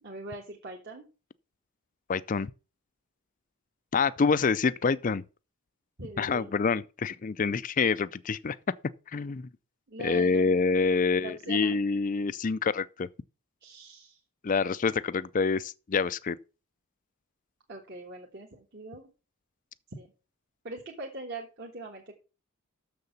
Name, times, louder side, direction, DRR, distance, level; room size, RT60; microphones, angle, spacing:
voice 1, 0.0-1.0 4.1-4.2 6.0-6.5 9.9-10.5 11.2-11.8 13.6-14.2 17.7-19.1 19.9-20.1 20.6-22.1, right 3 dB, 50° right, 1.5 m, -42 dB
voice 2, 2.1-2.5 3.9-5.2 6.2-8.6 9.1-9.5 10.0-13.1 14.4-16.4, left 4 dB, 35° left, 0.4 m, -27 dB
6.8 x 6.7 x 7.0 m
head